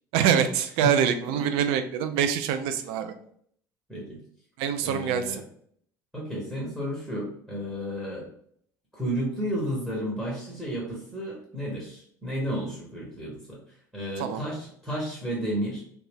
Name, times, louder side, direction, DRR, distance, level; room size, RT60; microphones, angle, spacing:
voice 1, 0.1-3.1 4.6-5.4 14.2-14.4, right 8 dB, 50° right, 9 dB, 0.3 m, -25 dB
voice 2, 4.8-5.4 6.1-8.3 8.9-13.6 13.9-15.8, equal, ahead, -4 dB, 1.0 m, -32 dB
2.5 x 2.1 x 3.4 m, 0.64 s
figure-of-eight pair, 65°, 11 cm